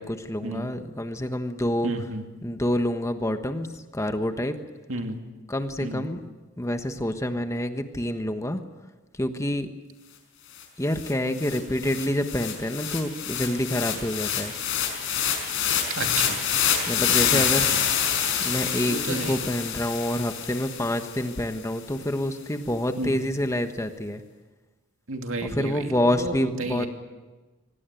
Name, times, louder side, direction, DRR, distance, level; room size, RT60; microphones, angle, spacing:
voice 1, 0.0-1.9 2.4-3.7 3.9-4.6 5.5-6.2 6.6-8.6 9.2-9.7 10.8-14.5 16.9-17.7 18.4-24.2 25.4-26.9, left 1 dB, 15° left, 7 dB, 1.3 m, -27 dB
voice 2, 1.8-2.2 4.9-5.2 5.8-6.1 16.0-16.4 17.3-17.8 18.8-19.4 23.0-23.1 25.1-26.9, right 2 dB, 75° right, 4 dB, 2.7 m, -32 dB
sound 1, 10.6-10.7 11.0-21.3, left 8 dB, 70° left, 5.5 m, -27 dB
25.5 x 18.0 x 9.2 m, 1.3 s
head